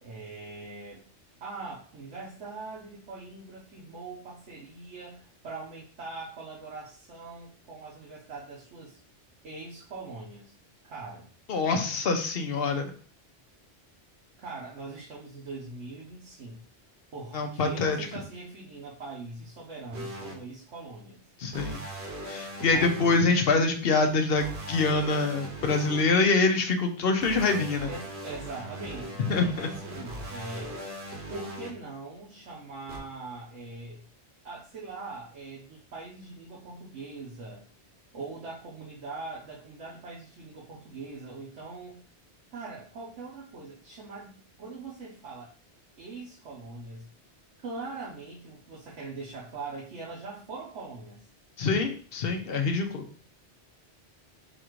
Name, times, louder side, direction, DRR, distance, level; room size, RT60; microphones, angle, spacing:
voice 1, 0.0-1.0 1.4-9.0 9.4-10.5 10.8-11.3 14.4-16.6 17.1-21.2 22.7-23.1 27.9-30.8 31.3-34.0 34.4-37.6 38.1-42.0 42.5-45.5 46.0-47.1 47.6-51.2, right 3 dB, 85° right, -5 dB, 1.3 m, -42 dB
voice 2, 11.5-12.9 17.3-18.0 21.4-21.8 22.3-27.9 29.2-29.7 51.6-53.0, left 3 dB, 60° left, 5 dB, 0.9 m, -25 dB
sound 1, 19.9-20.3 21.5-23.2 24.4-26.0 27.2-31.7 32.9-33.0, right 1 dB, 65° right, 1.1 m, -39 dB
4.1 x 2.5 x 4.5 m, 0.43 s
omnidirectional pair, 1.2 m